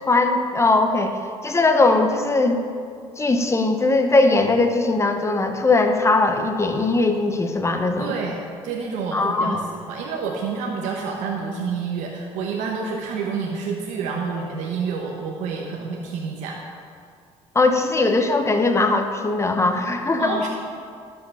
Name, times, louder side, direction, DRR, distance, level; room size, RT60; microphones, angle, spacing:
voice 1, 0.1-1.2 1.4-2.6 3.2-8.1 9.1-9.6 17.5-20.4, left 3 dB, 25° left, 6 dB, 1.1 m, -20 dB
voice 2, 8.0-8.3 8.6-16.6 20.2-20.5, right 5 dB, 85° right, 0 dB, 1.0 m, -28 dB
12.0 x 5.7 x 5.6 m, 2.2 s
supercardioid pair, 80°, 12 cm